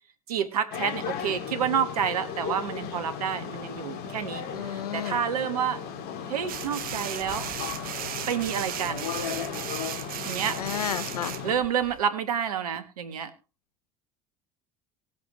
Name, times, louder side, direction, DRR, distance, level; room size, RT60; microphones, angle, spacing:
voice 1, 0.3-5.8 6.3-7.5 8.3-9.1 10.2-10.6 11.4-13.3, right 8 dB, 85° right, 11 dB, 1.5 m, -29 dB
sound 1, 0.7-11.6, left 7 dB, 60° left, 2.3 m, -36 dB
voice 2, 4.5-5.2 10.6-11.4, left 10 dB, 90° left, 17 dB, 0.7 m, -32 dB
sound 2, 6.5-12.0, right 12 dB, 50° right, 1.0 m, -36 dB
19.5 x 8.4 x 3.1 m, 0.30 s
hypercardioid pair, 70°, 19 cm